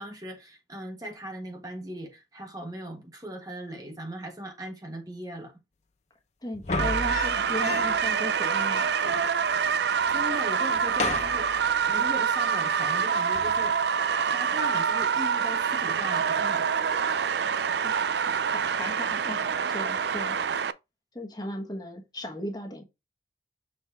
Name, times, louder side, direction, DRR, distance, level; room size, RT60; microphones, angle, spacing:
voice 1, 0.0-5.5 10.1-13.8 14.3-16.7, equal, 20° right, 1.3 m, -39 dB
voice 2, 6.4-8.9 17.8-20.4 21.1-22.8, left 1 dB, 20° left, 1.2 m, -37 dB
sound 1, 6.5-8.1 8.4-8.5 8.7-9.7 10.0-10.4 10.7-12.1 13.4-13.7, left 3 dB, 35° left, 0.8 m, -34 dB
sound 2, 6.8-20.7, right 6 dB, 60° right, 0.4 m, -26 dB
6.6 x 4.1 x 3.5 m
head